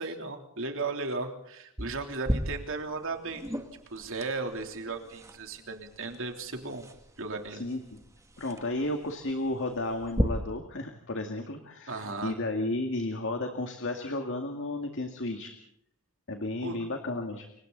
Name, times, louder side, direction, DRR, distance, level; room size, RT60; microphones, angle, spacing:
voice 1, 0.0-3.5 3.9-6.9 7.2-7.6 11.9-12.3 16.6-16.8, right 3 dB, 60° right, 4 dB, 3.3 m, -35 dB
sound 1, 1.8-10.2, equal, 15° right, 2.3 m, -37 dB
voice 2, 7.5-8.0 8.4-15.5 16.3-17.5, left 2 dB, 60° left, 4 dB, 2.1 m, -33 dB
29.0 x 24.5 x 4.0 m, 0.76 s
head